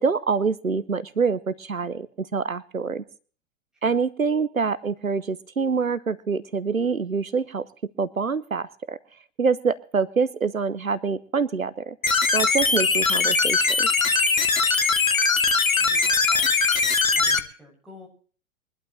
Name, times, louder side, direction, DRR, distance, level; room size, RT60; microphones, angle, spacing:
voice 1, 0.0-3.0 3.8-7.7 8.0-9.0 9.4-12.0 12.3-13.9, right 5 dB, 90° right, 16 dB, 0.8 m, -25 dB
sound 1, 12.0-17.4, left 4 dB, 85° left, 1.2 m, -21 dB
voice 2, 14.9-16.5 17.0-18.1, left 1 dB, ahead, -2 dB, 7.4 m, -50 dB
23.0 x 11.5 x 3.2 m, 0.43 s
figure-of-eight pair, 95°, 40 cm